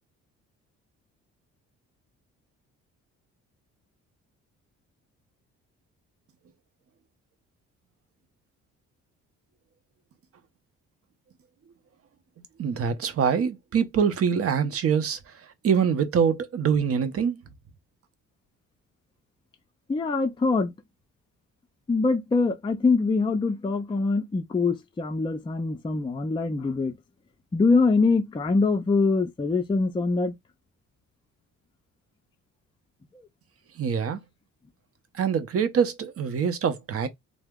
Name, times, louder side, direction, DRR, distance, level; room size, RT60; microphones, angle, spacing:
voice 1, 12.6-15.2 15.6-17.4 33.8-34.2 35.1-37.1, right 7 dB, 50° right, 0.7 m, -24 dB
voice 2, 19.9-20.7 21.9-27.0 27.5-30.3 33.1-33.3, left 3 dB, 15° left, 0.4 m, -24 dB
2.7 x 2.1 x 3.5 m
cardioid pair, 90°, 30 cm